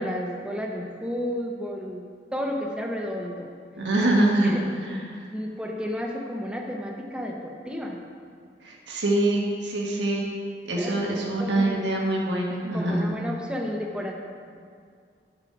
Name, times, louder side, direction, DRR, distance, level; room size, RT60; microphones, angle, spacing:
voice 1, 0.0-2.0 2.3-3.5 4.4-4.6 5.3-8.0 10.8-11.8 12.7-14.1, equal, 5° right, 1 dB, 0.6 m, -32 dB
voice 2, 3.8-4.5 4.8-5.2 8.6-10.2 10.6-13.1, right 1 dB, 85° right, -2 dB, 1.4 m, -24 dB
7.8 x 4.8 x 5.7 m, 2.1 s
head